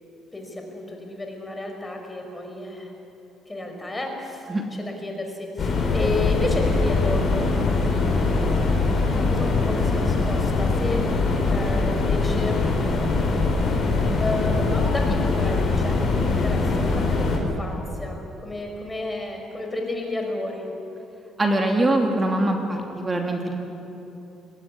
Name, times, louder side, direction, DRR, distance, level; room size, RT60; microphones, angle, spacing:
voice 1, 0.3-2.9 3.5-7.8 9.2-11.1 11.5-12.6 14.2-20.7, left 2 dB, 15° left, 2 dB, 5.0 m, -32 dB
sound 1, 5.6-17.4, left 3 dB, 40° left, 5.2 m, -22 dB
voice 2, 21.4-23.6, right 1 dB, 20° right, 2 dB, 2.7 m, -23 dB
21.5 x 16.0 x 9.9 m, 3.0 s
cardioid pair, 95°, 0 cm